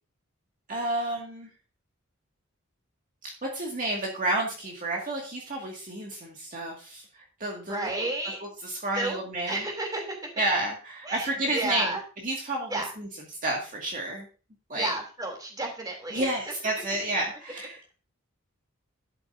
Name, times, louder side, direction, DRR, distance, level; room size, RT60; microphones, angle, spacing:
voice 1, 0.7-1.5 3.2-8.1 8.4-9.6 10.4-12.0 12.2-14.3 14.7-14.9 16.1-17.8, right 1 dB, 40° right, -1 dB, 2.0 m, -31 dB
voice 2, 7.7-8.4 8.9-9.2 9.5-10.2 11.0-12.0 12.7-12.9 14.7-16.3, right 2 dB, 20° right, 2 dB, 3.0 m, -31 dB
12.0 x 8.8 x 2.6 m, 0.35 s
head